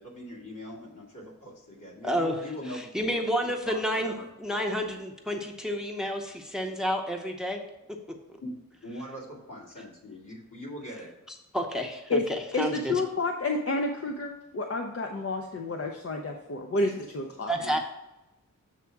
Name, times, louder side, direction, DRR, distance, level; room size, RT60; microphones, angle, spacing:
voice 1, 0.0-4.3 8.4-8.6 8.8-11.1 17.6-17.8, left 1 dB, 70° left, -4 dB, 2.4 m, -41 dB
voice 2, 2.0-2.3 2.7-4.1 4.4-7.6 11.5-12.2 12.6-12.7 17.5-17.8, equal, ahead, 3 dB, 0.7 m, -29 dB
voice 3, 12.5-17.5, left 2 dB, 45° left, 2 dB, 0.6 m, -30 dB
7.4 x 3.4 x 5.8 m, 0.97 s
wide cardioid pair, 100°, 32 cm